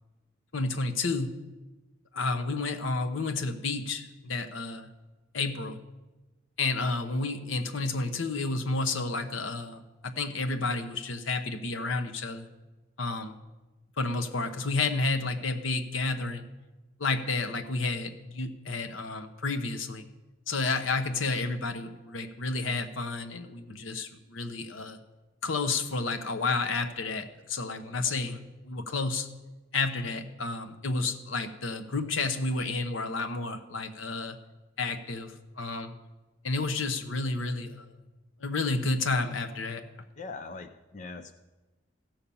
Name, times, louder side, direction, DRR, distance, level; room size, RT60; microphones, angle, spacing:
voice 1, 0.5-1.3 2.1-4.9 5.3-5.8 6.6-12.5 13.0-13.3 14.0-16.5 17.0-20.0 20.5-25.0 25.4-29.3 29.7-34.4 34.8-35.9 36.4-37.9 38.4-39.8, left 3 dB, 80° left, 8 dB, 0.9 m, -31 dB
voice 2, 40.2-41.3, left 4 dB, 40° left, 7 dB, 0.5 m, -41 dB
15.0 x 5.8 x 7.0 m, 1.1 s
head